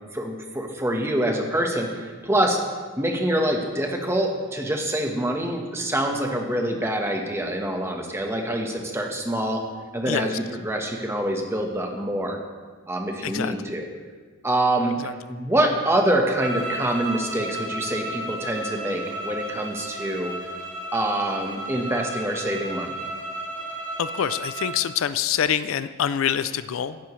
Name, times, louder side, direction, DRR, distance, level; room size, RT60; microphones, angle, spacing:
voice 1, 0.1-2.6 3.0-9.6 9.9-12.4 12.9-13.9 14.4-15.0 15.3-20.3 20.9-23.0, right 1 dB, 10° right, 2 dB, 1.2 m, -25 dB
voice 2, 13.2-13.7 15.0-15.1 24.0-27.0, left 9 dB, 70° left, 14 dB, 0.4 m, -26 dB
sound 1, 16.4-24.8, right 1 dB, 65° right, 2.9 m, -33 dB
16.5 x 10.0 x 3.2 m, 1.5 s
head